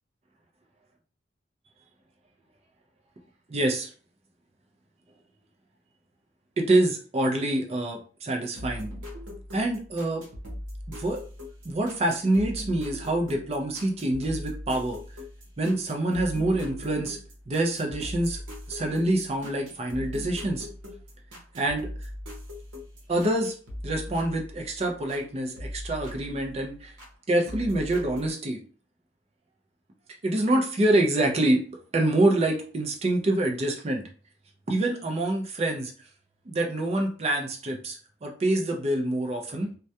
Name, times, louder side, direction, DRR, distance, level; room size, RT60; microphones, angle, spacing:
voice 1, 3.5-3.9 6.6-8.9 9.5-10.2 11.0-11.2 11.6-15.0 15.6-17.2 17.5-18.4 18.7-20.7 21.6-21.9 23.1-23.5 23.8-26.9 27.3-28.6 30.2-31.6 31.9-34.1 34.7-35.9 36.5-39.7, right 1 dB, 30° right, 2 dB, 0.4 m, -26 dB
sound 1, 8.6-25.2 25.6-27.1 27.5-28.3, left 1 dB, 75° right, 0.8 m, -40 dB
2.2 x 2.1 x 2.7 m, 0.40 s
head